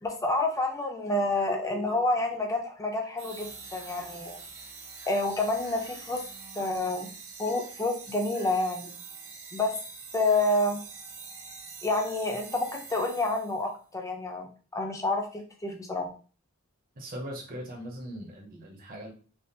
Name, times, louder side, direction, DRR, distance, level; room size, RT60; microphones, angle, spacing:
voice 1, 0.0-4.4 5.1-6.2 6.6-7.1 7.4-8.9 9.5-9.7 10.1-10.8 11.8-16.1, left 2 dB, 15° left, 2 dB, 0.5 m, -28 dB
sound 1, 3.2-13.7, right 5 dB, 80° right, 0.7 m, -45 dB
voice 2, 17.0-19.1, equal, 40° right, 0 dB, 0.7 m, -40 dB
3.4 x 2.3 x 2.7 m, 0.38 s
head